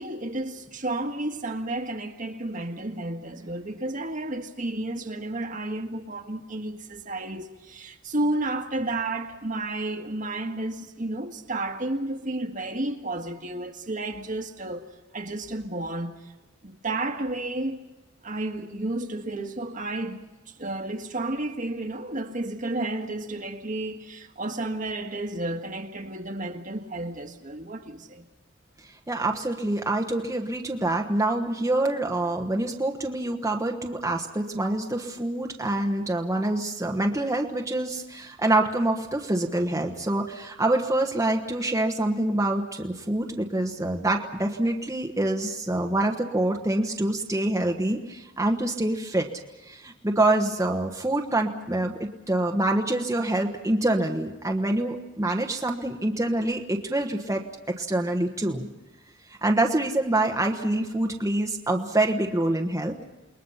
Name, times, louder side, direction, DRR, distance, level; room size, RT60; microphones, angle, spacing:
voice 1, 0.0-14.8 15.1-16.3 16.6-17.8 18.2-20.2 20.5-28.2, right 2 dB, 40° right, 1.7 m, -32 dB
voice 2, 29.1-49.3 49.6-58.7 59.3-63.0, right 1 dB, 15° right, 1.3 m, -26 dB
29.0 x 21.0 x 5.7 m
head